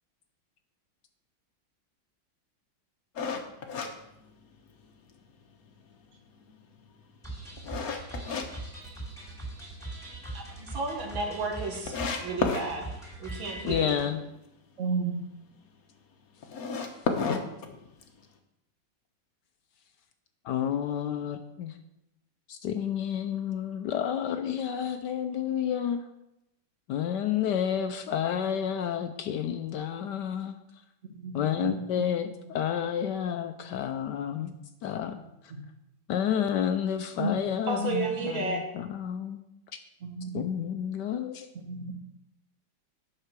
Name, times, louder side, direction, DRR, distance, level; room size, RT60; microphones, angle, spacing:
sound 1, 3.2-4.9 5.3-5.4 5.9-8.5 8.8-9.6 9.9-10.0 10.4-10.5 10.7-10.8 11.4-11.5 11.9-12.7 16.4-18.3, left 5 dB, 55° left, 1.3 m, -32 dB
sound 2, 7.2-14.1, right 2 dB, ahead, 2.8 m, -41 dB
voice 1, 10.3-14.1 37.7-38.6, right 2 dB, 75° right, 2 dB, 2.3 m, -33 dB
voice 2, 13.6-14.2 20.4-21.7 22.5-26.0 26.9-30.5 31.3-34.5 34.8-35.2 36.1-37.9 38.3-39.4 40.3-41.5, left 9 dB, 70° left, 8 dB, 1.1 m, -30 dB
voice 3, 14.8-15.2 31.1-32.1 34.4-34.6 37.2-37.3 37.8-38.0 40.0-40.4 41.6-41.9, right 3 dB, 45° right, 3 dB, 1.4 m, -33 dB
9.8 x 5.7 x 6.0 m, 0.88 s
omnidirectional pair, 2.2 m